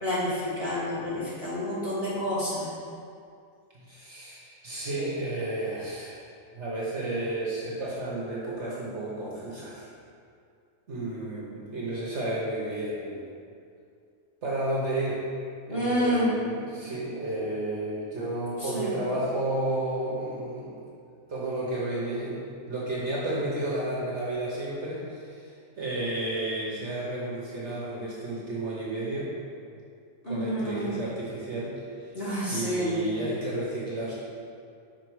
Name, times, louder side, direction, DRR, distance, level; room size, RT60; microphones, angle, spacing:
voice 1, 0.0-2.7 15.7-16.3 18.6-19.1 30.2-31.0 32.1-33.0, equal, 35° left, -9 dB, 1.9 m, -29 dB
voice 2, 3.7-6.3 6.5-9.9 10.9-13.2 14.4-15.2 15.7-20.9 21.3-29.3 30.2-32.1 32.5-34.1, right 1 dB, 50° right, -5 dB, 1.2 m, -32 dB
5.9 x 4.6 x 4.7 m, 2.4 s
omnidirectional pair, 1.7 m